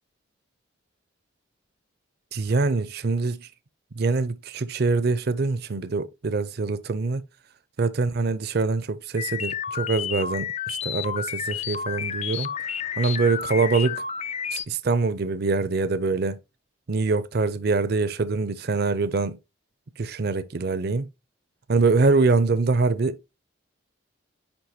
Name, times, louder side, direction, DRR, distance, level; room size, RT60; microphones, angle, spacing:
voice 1, 2.3-3.5 4.0-7.2 7.8-12.5 13.0-14.0 14.5-16.4 16.9-19.4 20.0-21.1 21.7-23.2, right 3 dB, 50° right, 0.5 m, -24 dB
sound 1, 9.2-14.7, left 8 dB, 35° left, 0.3 m, -31 dB
9.7 x 3.8 x 2.8 m
head